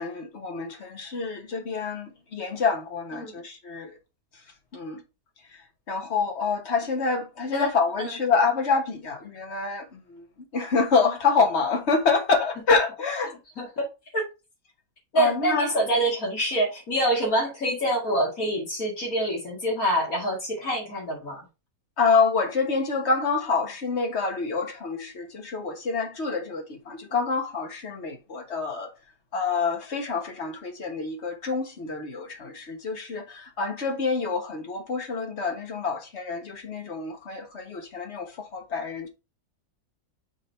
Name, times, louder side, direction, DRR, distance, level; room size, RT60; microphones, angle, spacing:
voice 1, 0.0-3.9 4.7-5.0 5.9-10.2 10.5-13.3 15.1-15.7 22.0-28.9 29.3-39.1, left 4 dB, 45° left, 1.5 m, -27 dB
voice 2, 13.6-13.9 14.1-14.2 15.1-21.4, right 1 dB, 60° left, 2.8 m, -26 dB
6.5 x 3.8 x 4.4 m
omnidirectional pair, 1.7 m